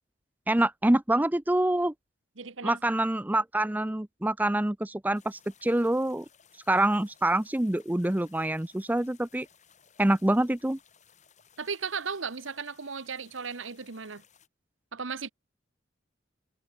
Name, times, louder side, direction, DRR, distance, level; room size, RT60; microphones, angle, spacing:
voice 1, 0.5-1.9 2.6-6.3 6.7-9.5 10.0-10.8, right 1 dB, 10° right, 0.5 m, -26 dB
voice 2, 2.4-3.0 11.6-14.2 14.9-15.3, right 5 dB, 85° right, 1.3 m, -36 dB
sound 1, 5.1-14.5, left 7 dB, 40° left, 5.5 m, -61 dB
head